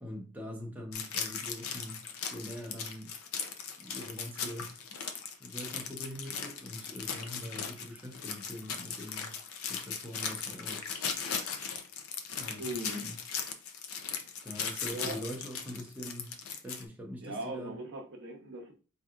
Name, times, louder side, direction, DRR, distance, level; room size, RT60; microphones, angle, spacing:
voice 1, 0.0-2.0 2.3-3.1 3.8-4.8 5.4-9.3 9.7-10.8 12.3-13.2 14.4-16.4 16.6-17.7, equal, 5° right, 0.7 m, -43 dB
sound 1, 0.9-16.8, left 6 dB, 65° left, 0.5 m, -38 dB
voice 2, 12.6-13.1 14.9-15.2 17.2-18.7, right 1 dB, 55° right, 0.8 m, -39 dB
4.6 x 2.8 x 2.4 m
head